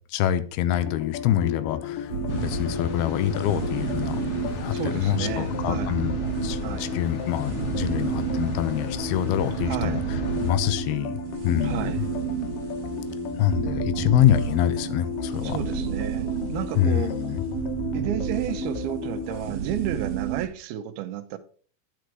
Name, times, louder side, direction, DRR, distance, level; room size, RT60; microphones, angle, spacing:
voice 1, 0.1-4.2 4.5-12.1 13.3-15.6 16.8-17.4, left 11 dB, 85° left, 2.8 m, -26 dB
sound 1, 0.7-19.5, left 9 dB, 70° left, 2.3 m, -35 dB
sound 2, 2.1-20.5, right 10 dB, 60° right, 1.7 m, -32 dB
sound 3, 2.3-10.5, left 5 dB, 50° left, 1.8 m, -36 dB
voice 2, 4.7-6.0 6.6-6.9 9.6-10.0 11.6-12.0 15.4-17.1 17.9-21.4, right 11 dB, 80° right, 2.7 m, -32 dB
10.5 x 6.1 x 4.7 m
omnidirectional pair, 4.4 m